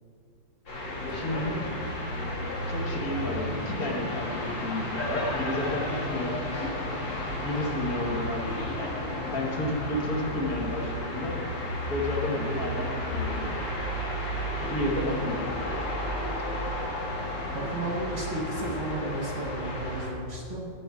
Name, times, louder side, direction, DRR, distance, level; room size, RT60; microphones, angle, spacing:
sound 1, 0.7-20.1, left 1 dB, 75° left, 3.1 m, -32 dB
voice 1, 1.0-1.6 2.7-6.8 7.2-8.6 9.1-11.4 11.9-13.5 14.6-15.4, left 1 dB, 50° left, -1 dB, 1.7 m, -31 dB
voice 2, 14.9-15.3 17.5-20.7, right 2 dB, 45° right, -1 dB, 1.3 m, -34 dB
11.5 x 8.2 x 4.8 m, 2.4 s
omnidirectional pair, 2.1 m